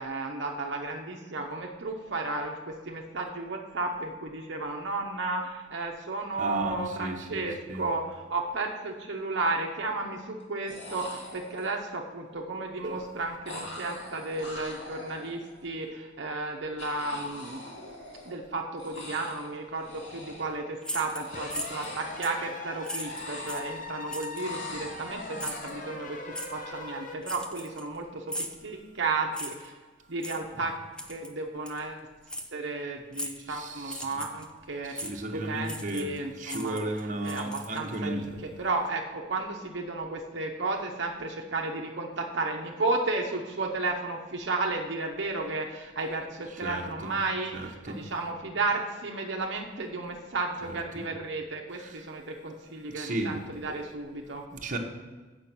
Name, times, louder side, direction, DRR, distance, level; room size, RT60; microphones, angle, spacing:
voice 1, 0.0-17.6 18.3-29.7 30.1-30.8 31.1-32.1 32.5-54.4, right 3 dB, 65° right, 1 dB, 0.9 m, -33 dB
voice 2, 6.4-7.4 7.7-7.8 12.8-12.9 33.5-34.1 34.9-36.1 36.4-38.4 46.6-47.1 47.5-48.0 51.8-52.0 52.9-53.4 53.7-53.8 54.5-54.8, right 1 dB, 45° right, 2 dB, 1.1 m, -34 dB
sound 1, 8.2-8.4 8.8-9.4 10.4-10.5 10.7-11.9 13.5-15.7 16.8-18.5 18.8-19.5 19.8-20.6 21.0-22.7 23.0-24.0 24.4-25.9, left 1 dB, 65° left, 2.4 m, -43 dB
sound 2, 20.8-21.9 22.2-22.4 22.8-23.7 24.1-24.5 25.4-25.7 26.3-26.5 27.2-28.0 28.3-28.6 29.3-29.7 30.2-30.4 31.0-31.3 31.7-31.8 32.3-32.5 33.1-33.4 33.8-34.4 34.9-35.1 35.6-36.2 36.4-37.9, equal, 5° left, 0.7 m, -38 dB
sound 3, 21.3-27.2, left 3 dB, 45° left, 1.0 m, -40 dB
8.2 x 6.3 x 6.0 m, 1.3 s
head